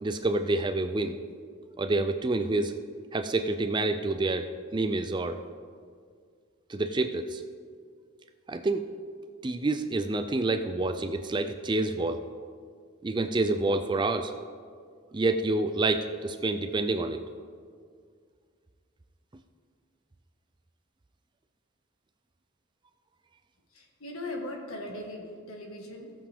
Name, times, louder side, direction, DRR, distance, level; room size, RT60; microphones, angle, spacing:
voice 1, 0.0-1.2 1.8-2.7 3.1-5.4 6.7-7.4 8.5-8.8 9.4-12.2 13.0-14.3 15.1-17.2, right 2 dB, 20° right, 9 dB, 0.4 m, -28 dB
voice 2, 23.7-26.1, left 1 dB, 80° left, 1 dB, 1.6 m, -39 dB
17.0 x 7.2 x 3.5 m, 2.1 s
head